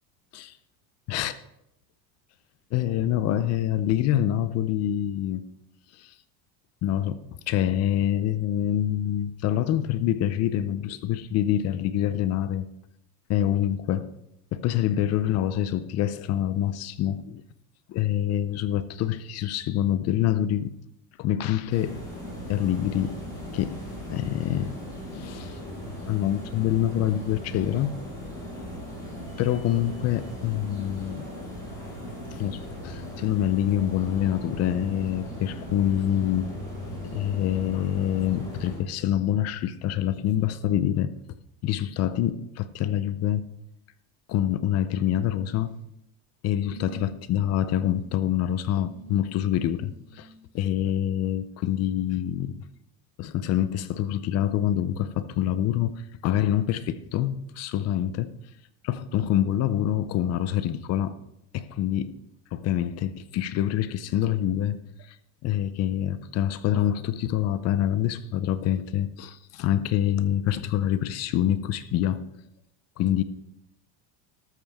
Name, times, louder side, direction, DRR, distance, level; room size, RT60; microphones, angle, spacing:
voice 1, 2.7-5.4 6.0-6.1 6.8-7.2 7.5-12.7 13.3-14.1 14.5-17.4 17.9-20.7 21.2-22.0 22.5-23.2 23.5-23.8 24.1-24.8 25.1-25.6 26.1-27.9 29.4-31.3 32.3-36.6 37.0-41.2 41.6-43.4 44.3-45.8 46.4-50.3 50.5-52.6 53.2-58.3 58.8-61.2 61.5-62.1 62.5-64.8 65.1-65.2 65.4-72.3 73.0-73.2, left 11 dB, 35° left, 0.5 m, -26 dB
sound 1, 21.7-38.8, equal, 10° left, 5.0 m, -38 dB
sound 2, 45.3-45.9 46.6-47.2 47.7-48.1 48.8-50.4 51.7-51.8, right 6 dB, 75° right, 5.9 m, -48 dB
13.0 x 12.5 x 3.5 m
cardioid pair, 160°, 48 cm